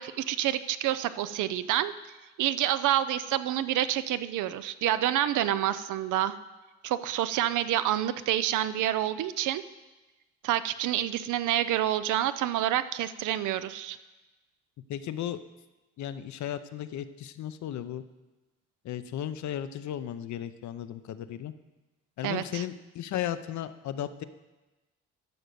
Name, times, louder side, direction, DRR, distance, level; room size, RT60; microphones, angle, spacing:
voice 1, 0.0-1.9 2.4-6.4 6.8-9.6 10.4-14.0 22.2-22.6, right 12 dB, 80° right, 13 dB, 0.6 m, -28 dB
voice 2, 14.9-15.4 16.0-18.0 18.8-21.5 22.2-24.2, left 11 dB, 70° left, 12 dB, 0.7 m, -35 dB
12.0 x 5.1 x 6.8 m, 1.1 s
cardioid pair, 90°, 30 cm